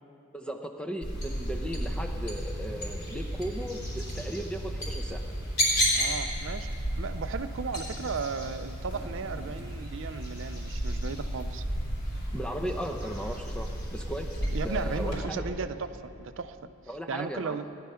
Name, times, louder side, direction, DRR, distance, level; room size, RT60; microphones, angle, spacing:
voice 1, 0.3-5.2 12.3-14.3 14.6-15.4 16.9-17.6, equal, 5° left, 4 dB, 0.7 m, -36 dB
sound 1, 1.0-15.2, equal, 45° left, 4.3 m, -32 dB
voice 2, 5.9-6.7 7.0-11.6 14.5-16.6 17.1-17.7, right 5 dB, 55° right, 11 dB, 0.4 m, -35 dB
17.5 x 10.5 x 5.6 m, 2.7 s
head